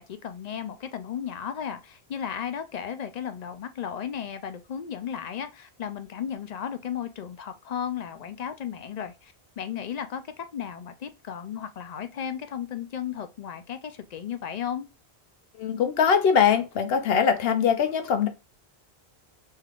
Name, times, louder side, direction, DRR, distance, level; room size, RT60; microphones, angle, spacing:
voice 1, 0.0-14.9, left 8 dB, 55° left, 0.5 m, -35 dB
voice 2, 15.6-18.3, left 7 dB, 70° left, 0.9 m, -22 dB
5.4 x 3.4 x 2.4 m
omnidirectional pair, 1.1 m